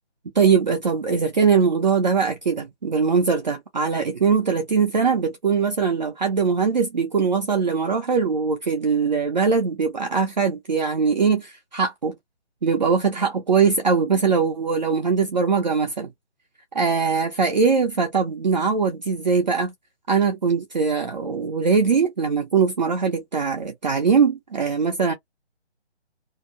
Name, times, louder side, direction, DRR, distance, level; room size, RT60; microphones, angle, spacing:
voice 1, 0.3-12.2 12.6-16.1 16.7-19.7 20.1-25.1, right 5 dB, 40° right, 0.6 m, -21 dB
2.7 x 2.1 x 2.5 m
figure-of-eight pair, 150°, 35 cm